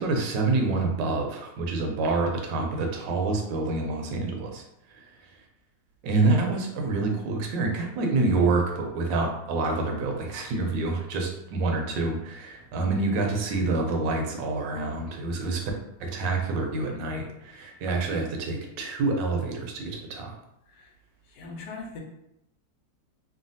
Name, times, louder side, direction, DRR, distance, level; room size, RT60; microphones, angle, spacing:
voice 1, 0.0-4.6 4.9-5.0 6.0-15.7 16.0-20.4, right 3 dB, 85° right, 2 dB, 1.3 m, -27 dB
voice 2, 21.3-22.0, left 3 dB, 75° left, 1 dB, 1.2 m, -40 dB
3.2 x 2.2 x 2.6 m, 0.83 s
omnidirectional pair, 1.9 m